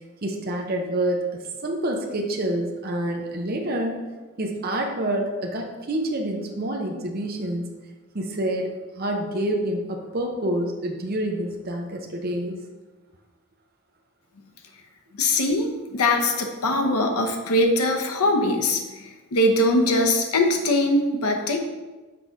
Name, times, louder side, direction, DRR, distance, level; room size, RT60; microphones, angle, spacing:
voice 1, 0.2-4.0 4.4-7.7 8.1-12.6 16.8-17.0, right 1 dB, 45° right, 1 dB, 0.7 m, -27 dB
voice 2, 15.1-15.7 15.9-21.6, left 1 dB, 85° left, 3 dB, 0.9 m, -22 dB
6.0 x 3.9 x 4.6 m, 1.2 s
head